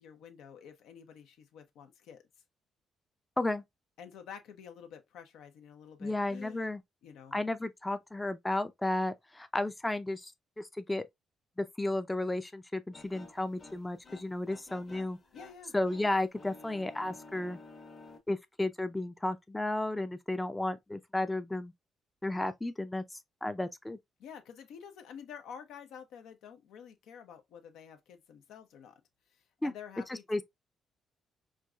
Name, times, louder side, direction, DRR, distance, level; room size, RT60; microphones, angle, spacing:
voice 1, 0.0-2.2 4.0-6.7 7.0-7.4 15.3-15.7 24.2-29.0 29.3-30.4, left 7 dB, 85° left, 0.7 m, -49 dB
voice 2, 6.0-6.8 7.3-10.3 10.6-11.1 11.6-15.2 15.7-17.6 18.3-21.7 22.2-23.0 23.4-24.0 29.6-29.7 30.3-30.4, left 2 dB, 10° left, 0.4 m, -33 dB
sound 1, 12.9-18.2, left 3 dB, 45° left, 1.1 m, -53 dB
4.6 x 2.6 x 2.3 m
cardioid pair, 90°, 0 cm